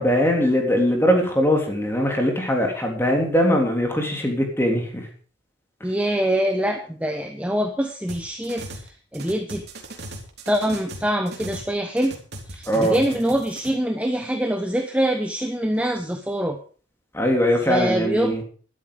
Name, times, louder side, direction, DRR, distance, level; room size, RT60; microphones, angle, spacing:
voice 1, 0.0-5.1 12.7-13.0 17.1-18.4, equal, 10° left, 2 dB, 3.4 m, -21 dB
voice 2, 5.8-9.6 10.5-12.2 12.5-16.6 17.7-18.4, equal, 5° right, 6 dB, 0.9 m, -24 dB
sound 1, 8.1-8.9 9.1-11.7 12.0-13.7, right 2 dB, 55° right, 3.5 m, -38 dB
13.0 x 12.5 x 5.2 m, 0.42 s
head